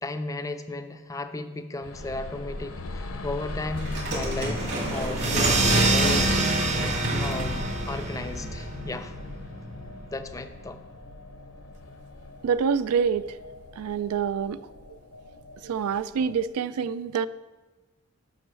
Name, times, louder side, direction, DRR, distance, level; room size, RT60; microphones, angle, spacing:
voice 1, 0.0-6.3 7.2-9.2 10.1-10.8, left 2 dB, 15° left, 9 dB, 0.4 m, -35 dB
sound 1, 1.8-16.5, left 2 dB, 65° left, 0.7 m, -39 dB
sound 2, 3.8-8.9, right 1 dB, 55° right, 2.0 m, -30 dB
sound 3, 5.2-10.3, right 2 dB, 35° right, 0.8 m, -26 dB
voice 2, 12.4-13.2 13.8-14.6 15.6-17.3, right 6 dB, 85° right, 16 dB, 0.3 m, -26 dB
6.3 x 5.4 x 6.8 m, 1.2 s
head